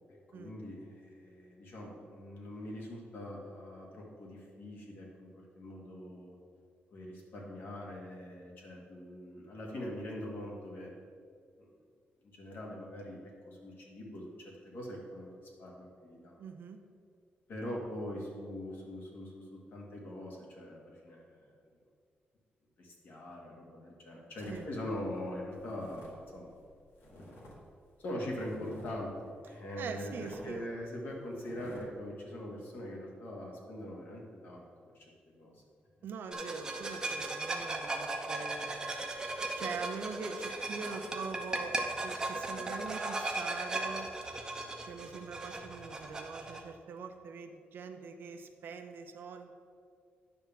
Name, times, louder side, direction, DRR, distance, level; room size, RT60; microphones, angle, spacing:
voice 1, 0.1-6.3 6.9-10.9 11.6-11.7 12.2-15.3 15.6-16.4 17.5-21.5 22.8-26.5 28.0-34.6 34.9-35.0 35.4-35.6, left 1 dB, 55° left, -2 dB, 1.8 m, -42 dB
voice 2, 16.4-16.8 24.5-24.7 29.7-30.7 36.0-39.1 39.6-41.8 42.0-44.1 44.8-49.5, right 5 dB, 65° right, 6 dB, 0.6 m, -43 dB
sound 1, 24.4-27.6 27.9-29.1 29.5-29.6 29.9-30.5 30.9-31.0 31.4-31.8, left 1 dB, 80° left, 1.9 m, -52 dB
sound 2, 36.3-46.6, right 2 dB, 20° right, 0.7 m, -37 dB
9.7 x 3.5 x 7.1 m, 2.2 s
wide cardioid pair, 170°, 4 cm